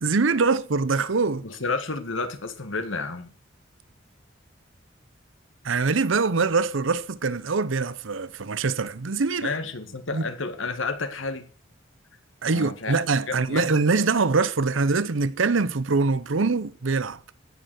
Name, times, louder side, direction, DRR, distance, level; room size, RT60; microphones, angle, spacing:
voice 1, 0.0-1.4 5.6-9.5 10.1-10.2 12.4-17.2, right 4 dB, 80° right, 0.8 m, -23 dB
voice 2, 1.4-3.3 9.4-11.5 12.5-13.0 13.3-13.7, left 3 dB, 85° left, 1.9 m, -31 dB
17.0 x 6.8 x 6.4 m
head